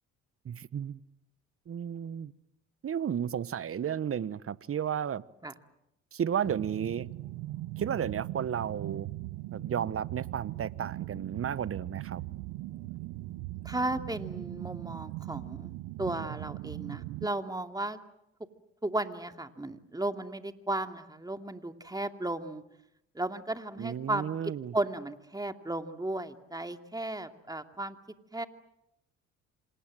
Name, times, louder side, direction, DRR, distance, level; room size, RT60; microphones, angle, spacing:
voice 1, 0.4-1.0 1.7-2.3 2.8-5.2 6.1-7.1 7.8-9.1 9.5-12.2 23.8-24.7, right 8 dB, 45° right, 1.1 m, -33 dB
sound 1, 6.4-17.3, right 18 dB, 80° right, 1.0 m, -39 dB
voice 2, 13.6-15.7 16.0-18.0 18.8-22.6 23.1-28.0 28.3-28.5, right 2 dB, 10° right, 2.6 m, -35 dB
27.5 x 27.0 x 7.7 m
hypercardioid pair, 60°, 33 cm